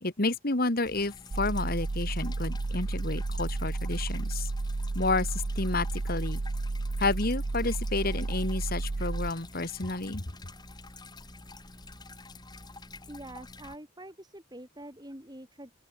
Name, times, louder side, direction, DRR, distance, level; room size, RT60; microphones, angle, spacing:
voice 1, 0.0-4.5 5.0-6.4 7.0-10.2, left 3 dB, 45° left, 1.9 m, -30 dB
sound 1, 0.8-13.8, left 2 dB, 20° left, 3.1 m, -48 dB
sound 2, 1.3-9.3, right 2 dB, 80° right, 0.9 m, -32 dB
voice 2, 13.1-15.7, right 1 dB, 20° right, 5.2 m, -45 dB
open air
head